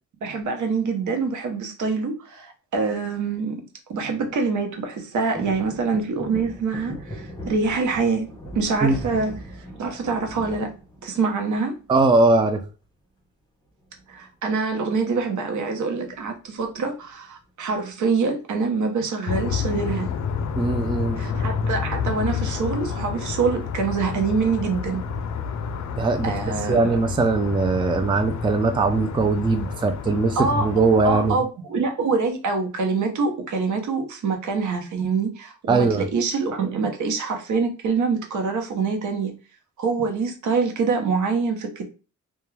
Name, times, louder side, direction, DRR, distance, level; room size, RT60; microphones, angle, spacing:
voice 1, 0.2-10.7 11.0-11.8 14.1-20.2 21.2-25.0 26.2-27.0 30.4-30.7 31.0-39.3 39.8-41.8, right 4 dB, 80° right, 0.8 m, -25 dB
sound 1, 5.3-11.5 12.0-12.6 13.8-14.3 14.5-14.6 14.9-15.2 16.0-17.0 17.4-17.5, equal, 15° left, 0.8 m, -39 dB
voice 2, 11.9-12.6 20.5-21.2 26.0-26.3 26.7-31.4 35.7-36.1, right 3 dB, 15° right, 0.3 m, -20 dB
sound 2, 19.3-31.3, left 6 dB, 70° left, 0.5 m, -29 dB
2.3 x 2.2 x 3.1 m
wide cardioid pair, 110°, 30 cm